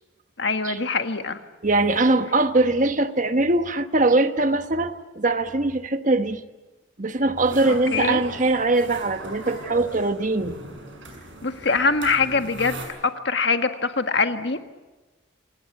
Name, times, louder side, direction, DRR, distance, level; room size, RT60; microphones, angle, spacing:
voice 1, 0.4-1.4 7.9-8.2 11.4-12.8 13.0-14.7, left 4 dB, 65° left, 1.7 m, -23 dB
voice 2, 1.6-6.4 7.0-10.5, right 2 dB, 40° right, 1.2 m, -22 dB
sound 1, 7.4-12.9, right 2 dB, 80° right, 6.4 m, -39 dB
27.0 x 19.0 x 9.4 m
head